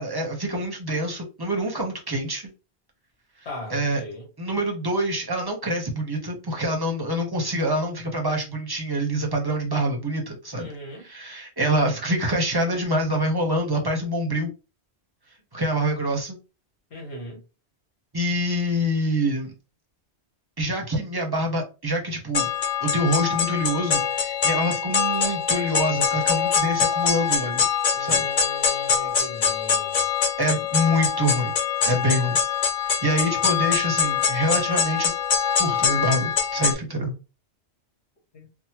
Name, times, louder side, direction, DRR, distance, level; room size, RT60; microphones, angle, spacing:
voice 1, 0.0-2.5 3.7-4.0 4.4-10.7 11.0-14.5 15.5-16.4 18.1-19.5 20.6-22.5 22.8-27.7 28.0-28.2 30.4-31.5 31.8-32.4 33.0-35.1 35.6-37.2, equal, 25° right, 0.8 m, -25 dB
voice 2, 3.4-4.3 10.6-11.1 16.9-17.4 27.9-30.0 38.3-38.5, equal, 70° left, 1.7 m, -39 dB
sound 1, 22.3-36.7, left 7 dB, 50° left, 0.6 m, -24 dB
3.4 x 2.1 x 2.9 m
omnidirectional pair, 1.1 m